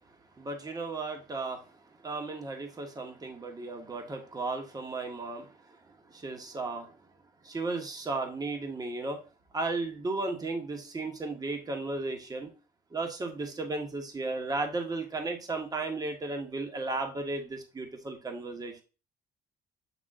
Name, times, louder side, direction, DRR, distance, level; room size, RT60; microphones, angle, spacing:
voice 1, 0.4-1.6 2.0-5.5 6.1-6.9 7.4-9.2 9.5-12.5 12.9-18.8, right 3 dB, 20° right, 4 dB, 1.4 m, -35 dB
8.2 x 3.5 x 3.7 m, 0.32 s
cardioid pair, 110°, 17 cm